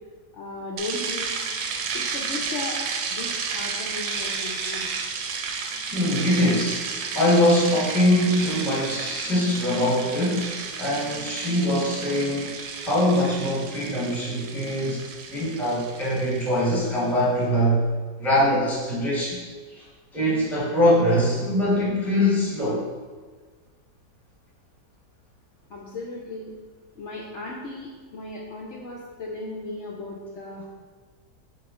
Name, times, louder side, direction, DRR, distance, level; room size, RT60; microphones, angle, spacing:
voice 1, 0.3-1.3 1.9-2.8 3.1-4.9 25.7-26.5 26.9-30.7, left 2 dB, 80° left, -3 dB, 0.6 m, -36 dB
sound 1, 0.8-17.1, right 5 dB, 75° right, 1.1 m, -32 dB
voice 2, 5.9-12.5 12.8-15.0 15.3-17.9 18.2-19.4 19.7-19.8 20.1-22.8, left 1 dB, ahead, -7 dB, 0.8 m, -23 dB
4.0 x 3.0 x 3.6 m, 1.5 s
omnidirectional pair, 1.8 m